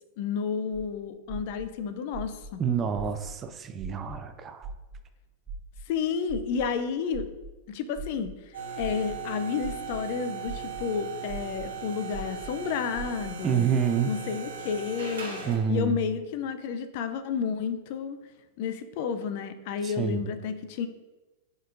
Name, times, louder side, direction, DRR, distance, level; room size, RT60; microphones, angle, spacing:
voice 1, 0.2-2.6 5.9-7.3 7.7-13.7 14.1-15.4 15.7-18.2 18.6-20.9, left 6 dB, 55° left, 10 dB, 0.4 m, -31 dB
sound 1, 0.7-0.8 1.3-1.6 2.1-2.5 2.9-3.3 3.8-4.1 4.6-5.0 5.5-5.8 6.3-6.6 7.1-7.5 7.9-8.3 8.8-9.1 9.6-10.0 10.5-10.8 11.3-11.6 12.1-12.5 12.9-13.3, right 5 dB, 10° right, 1.2 m, -39 dB
voice 2, 2.6-4.7 13.4-14.1 15.4-16.0 19.8-20.3, right 7 dB, 25° right, 9 dB, 0.4 m, -28 dB
sound 2, 8.5-15.8, right 6 dB, 80° right, 1.1 m, -38 dB
4.2 x 3.9 x 2.6 m, 1.1 s
hypercardioid pair, 110°, 0 cm